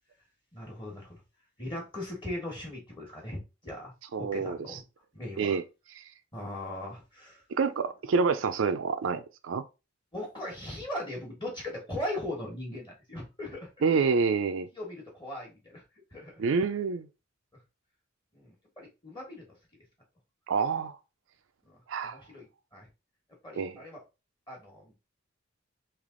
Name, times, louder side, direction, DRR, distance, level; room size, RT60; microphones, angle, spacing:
voice 1, 0.5-1.2 1.6-4.8 5.1-5.6 6.3-7.4 10.1-14.1 14.7-15.8 16.1-16.4 18.3-19.5 21.6-22.5 22.7-22.9 23.4-24.0 24.5-24.9, left 1 dB, 20° left, 1.2 m, -39 dB
voice 2, 4.1-4.8 5.4-5.6 6.0-6.1 7.6-9.6 13.8-14.7 16.4-17.1 20.5-21.0 21.9-22.2 23.6-23.8, right 5 dB, 70° right, 0.4 m, -27 dB
3.4 x 2.9 x 3.7 m
head